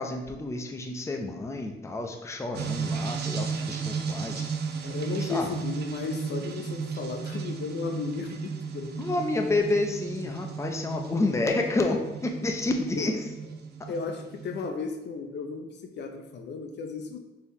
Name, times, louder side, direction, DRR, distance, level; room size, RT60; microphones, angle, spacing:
voice 1, 0.0-4.5 5.2-5.5 9.0-13.3 13.8-13.9, left 2 dB, 15° left, 3 dB, 0.5 m, -29 dB
sound 1, 2.5-14.7, right 5 dB, 55° right, 0.5 m, -35 dB
voice 2, 4.8-9.1 12.9-13.1 13.9-17.2, left 4 dB, 60° left, 5 dB, 0.6 m, -35 dB
4.5 x 2.9 x 3.5 m, 1.1 s
cardioid pair, 90°, 20 cm